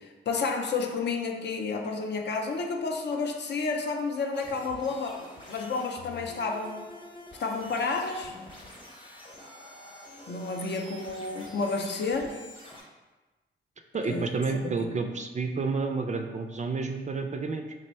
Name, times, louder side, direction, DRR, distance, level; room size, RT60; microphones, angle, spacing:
voice 1, 0.0-6.8 7.4-8.4 10.3-12.3 14.1-14.3 14.8-14.9, left 4 dB, 55° left, 2 dB, 0.5 m, -31 dB
sound 1, 4.3-12.8, left 1 dB, 25° left, 0.9 m, -47 dB
voice 2, 13.9-17.7, right 4 dB, 35° right, 5 dB, 0.3 m, -30 dB
3.3 x 2.2 x 4.2 m, 1.2 s
cardioid pair, 70°, 21 cm